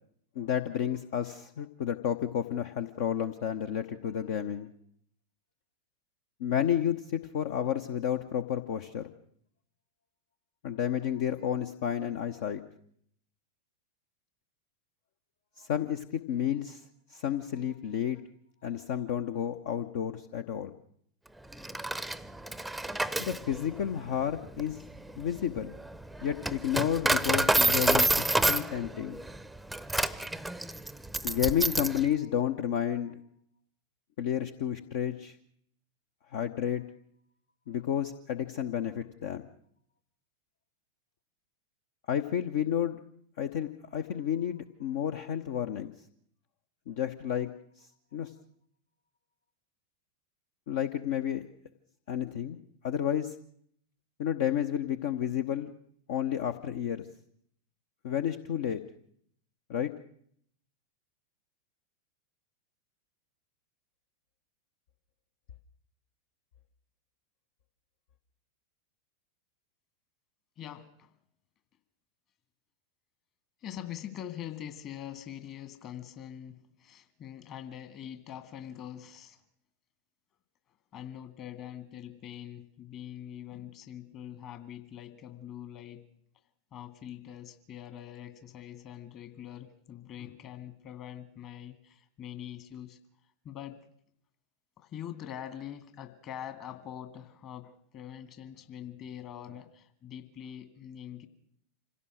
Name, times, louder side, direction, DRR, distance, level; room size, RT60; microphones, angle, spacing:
voice 1, 0.3-4.7 6.4-9.1 10.6-12.6 15.6-16.8 17.1-18.2 18.6-20.7 23.2-24.8 25.2-25.7 26.2-29.2 31.2-33.2 34.2-35.4 36.3-36.8 37.7-39.5 42.1-43.0 43.4-45.9 46.9-47.5 47.8-48.3 50.7-51.4 52.1-52.6 52.8-53.3 54.2-55.7 56.1-57.1 58.0-58.8 59.7-59.9, left 9 dB, 55° left, 8 dB, 1.0 m, -31 dB
Coin (dropping), 21.5-32.0, right 2 dB, ahead, 0.8 m, -29 dB
voice 2, 70.6-71.1 73.6-79.4 80.9-86.0 86.7-93.0 93.4-93.8 94.8-101.3, left 10 dB, 35° left, 10 dB, 2.1 m, -44 dB
26.0 x 16.5 x 6.4 m, 0.67 s
figure-of-eight pair, 90°, 0 cm